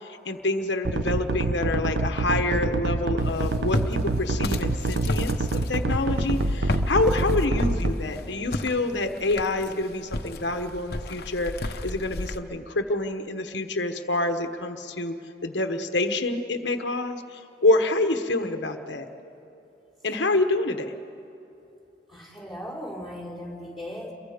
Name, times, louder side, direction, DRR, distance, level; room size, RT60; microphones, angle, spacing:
voice 1, 0.0-15.1 15.4-19.1 20.0-20.9, left 2 dB, 85° left, 6 dB, 1.2 m, -27 dB
sound 1, 0.8-7.9, right 2 dB, 90° right, 1.1 m, -25 dB
Walk footsteps, 3.2-12.4, left 1 dB, 55° left, 1.1 m, -33 dB
voice 2, 22.1-24.1, equal, ahead, -3 dB, 4.5 m, -37 dB
29.0 x 23.0 x 5.1 m, 3.0 s
head